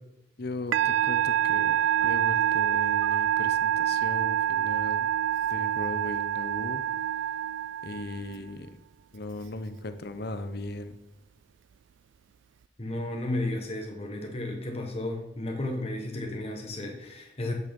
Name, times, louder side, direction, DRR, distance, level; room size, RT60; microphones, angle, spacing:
voice 1, 0.4-5.1 5.5-6.8 7.8-8.8 9.1-11.0, left 2 dB, 55° left, 10 dB, 0.9 m, -37 dB
Musical instrument, 0.7-8.3, right 10 dB, 70° right, 0.4 m, -26 dB
voice 2, 12.8-17.5, left 1 dB, 30° left, 2 dB, 1.4 m, -33 dB
16.0 x 6.6 x 5.3 m, 0.93 s
head